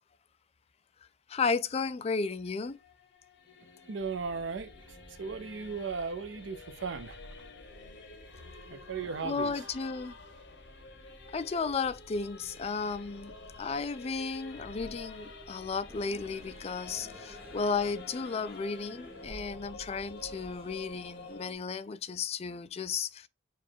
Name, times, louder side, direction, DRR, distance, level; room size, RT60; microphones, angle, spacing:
voice 1, 1.3-2.8 9.2-10.2 11.3-23.3, left 5 dB, 35° left, 0.4 m, -34 dB
Singing / Musical instrument, 2.2-21.5, left 3 dB, 65° left, 1.0 m, -50 dB
voice 2, 3.9-7.2 8.7-9.7, right 5 dB, 75° right, 0.5 m, -37 dB
sound 1, 4.0-18.0, equal, 15° left, 2.1 m, -55 dB
sound 2, 15.9-21.5, equal, 30° right, 0.8 m, -52 dB
4.8 x 2.3 x 4.3 m
head